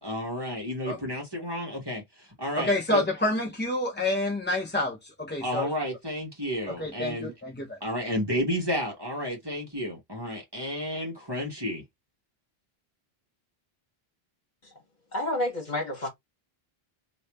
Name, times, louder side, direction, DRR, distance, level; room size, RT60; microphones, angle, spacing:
voice 1, 0.0-2.0 2.4-3.1 5.4-7.3 7.8-11.8, equal, 25° right, 1.6 m, -31 dB
voice 2, 2.6-5.7 6.8-7.8, left 1 dB, 15° left, 0.5 m, -28 dB
voice 3, 15.1-16.1, left 1 dB, 45° left, 1.8 m, -29 dB
3.1 x 3.1 x 2.9 m
omnidirectional pair, 1.0 m